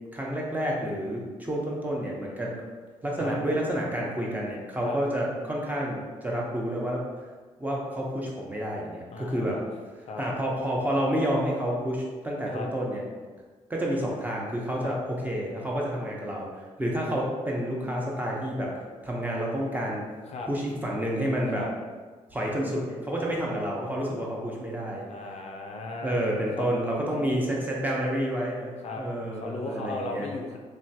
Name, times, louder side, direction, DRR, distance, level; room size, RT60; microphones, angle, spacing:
voice 1, 0.1-2.6 3.0-7.0 7.6-9.6 10.2-13.0 13.7-15.0 15.2-18.7 19.0-20.0 20.4-21.7 22.3-25.0 26.0-30.3, equal, 10° right, -3 dB, 0.7 m, -29 dB
voice 2, 9.1-9.7 10.0-10.2 12.5-12.7 14.8-15.0 20.3-20.5 21.5-21.7 23.2-23.4 25.1-26.2 26.6-26.7 28.8-29.0 29.3-30.6, left 3 dB, 55° left, 2 dB, 0.4 m, -37 dB
3.0 x 2.2 x 2.7 m, 1.4 s
cardioid pair, 65°, 13 cm